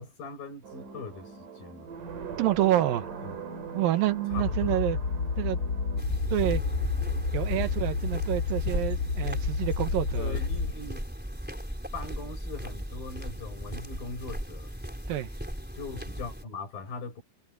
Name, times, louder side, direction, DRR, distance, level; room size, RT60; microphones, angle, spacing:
voice 1, 0.0-2.0 3.2-3.4 4.3-5.0 7.3-7.8 10.2-11.1 11.9-14.7 15.7-17.2, left 3 dB, 85° left, 9.1 m, -41 dB
sound 1, 0.6-6.0, right 5 dB, 65° right, 4.5 m, -41 dB
voice 2, 2.4-3.1 3.8-5.0 5.4-5.6 6.3-6.6 7.3-10.4 15.1-15.3, right 13 dB, 85° right, 2.9 m, -28 dB
sound 2, 4.3-10.7, left 4 dB, 40° left, 2.7 m, -30 dB
sound 3, 6.0-16.4, equal, 5° right, 3.6 m, -36 dB
omnidirectional pair, 4.0 m